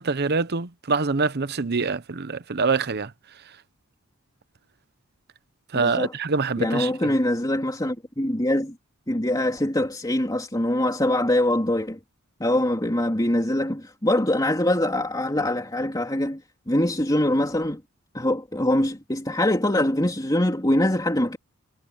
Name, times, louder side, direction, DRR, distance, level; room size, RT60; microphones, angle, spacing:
voice 1, 0.0-3.1 5.7-7.1, right 4 dB, 50° right, 0.8 m, -25 dB
voice 2, 5.7-6.1 6.6-8.7 9.1-12.0 12.4-16.4 16.7-17.8 18.1-21.4, left 1 dB, 20° left, 3.2 m, -23 dB
head